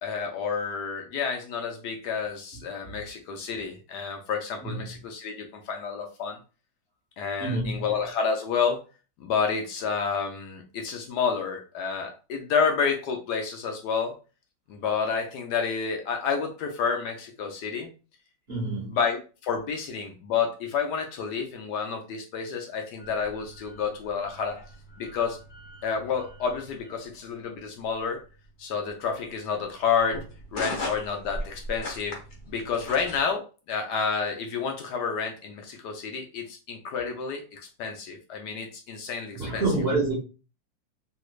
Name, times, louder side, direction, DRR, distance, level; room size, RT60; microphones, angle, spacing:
voice 1, 0.0-6.4 7.2-8.8 9.2-14.1 14.7-17.9 18.9-24.6 25.0-25.4 25.8-28.2 28.6-30.2 30.5-32.2 32.5-39.6, left 6 dB, 70° left, 1.1 m, -29 dB
voice 2, 4.6-5.0 7.4-7.9 18.5-19.0 39.3-40.1, right 2 dB, 45° right, 0.9 m, -28 dB
sound 1, 23.0-33.2, left 1 dB, 45° left, 1.1 m, -40 dB
3.2 x 3.1 x 2.4 m
omnidirectional pair, 2.0 m